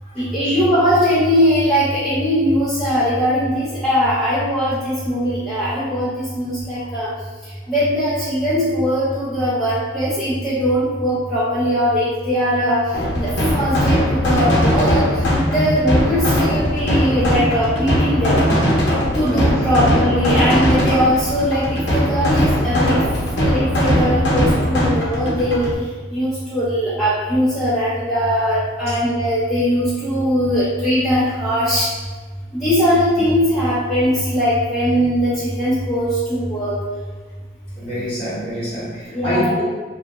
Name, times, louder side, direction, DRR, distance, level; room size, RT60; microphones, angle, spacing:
voice 1, 0.2-7.1 7.7-12.8 13.1-15.2 15.5-18.5 19.1-23.0 23.4-25.7 26.1-31.9 32.5-36.7 39.1-39.5, equal, 5° left, -13 dB, 0.6 m, -20 dB
sound 1, 12.9-25.7, equal, 75° left, 0.7 m, -19 dB
voice 2, 37.8-39.6, equal, 35° left, -10 dB, 1.1 m, -26 dB
2.2 x 2.0 x 2.9 m, 1.4 s
head